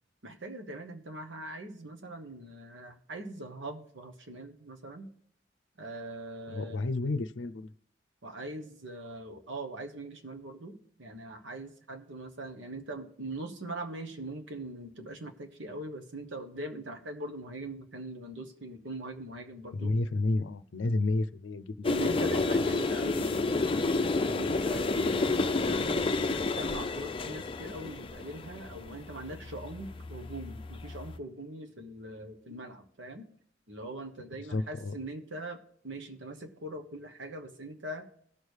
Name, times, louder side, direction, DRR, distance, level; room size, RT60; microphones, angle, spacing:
voice 1, 0.2-5.1 5.8-6.8 8.2-20.0 21.9-33.3 33.7-38.1, right 2 dB, 80° right, 6 dB, 1.2 m, -42 dB
voice 2, 6.5-7.7 19.7-22.0 34.5-34.9, left 2 dB, 90° left, 15 dB, 0.5 m, -31 dB
sound 1, 21.8-31.2, left 3 dB, 30° left, 0.5 m, -30 dB
18.0 x 6.4 x 3.3 m, 0.64 s
head